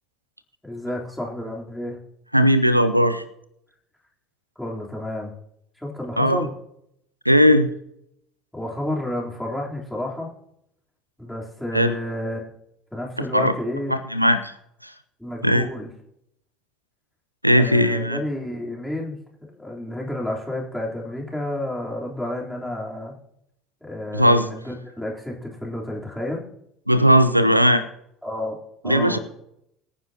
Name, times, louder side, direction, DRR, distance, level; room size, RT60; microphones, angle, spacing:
voice 1, 0.6-2.0 4.6-5.3 5.8-6.5 8.5-10.3 11.2-12.4 12.9-13.9 15.2-15.9 17.5-19.2 19.5-23.2 23.8-26.4 28.2-28.6 28.8-29.2, left 1 dB, ahead, -3 dB, 3.5 m, -30 dB
voice 2, 2.3-3.2 6.2-6.5 7.3-7.7 11.7-11.9 13.3-13.5 13.9-14.5 14.8-14.9 15.4-15.7 17.4-18.2 24.1-24.5 26.9-27.8 28.8-29.2, equal, 90° right, 13 dB, 0.6 m, -17 dB
23.0 x 9.6 x 2.9 m, 0.76 s
figure-of-eight pair, 65°, 0 cm